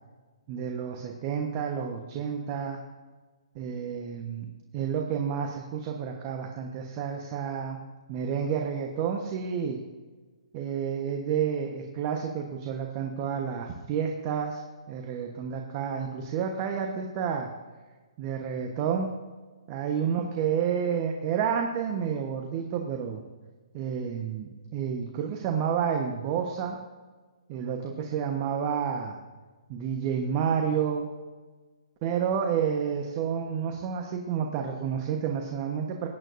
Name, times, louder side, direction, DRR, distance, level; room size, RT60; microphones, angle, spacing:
voice 1, 0.5-2.8 3.5-4.4 4.7-7.8 8.1-9.8 10.5-14.6 14.9-17.5 18.2-19.1 19.7-23.2 23.7-26.8 27.5-29.2 29.7-31.1 32.0-36.1, right 7 dB, 35° right, 3 dB, 1.2 m, -30 dB
18.0 x 9.3 x 2.7 m, 1.3 s
hypercardioid pair, 135°, 3 cm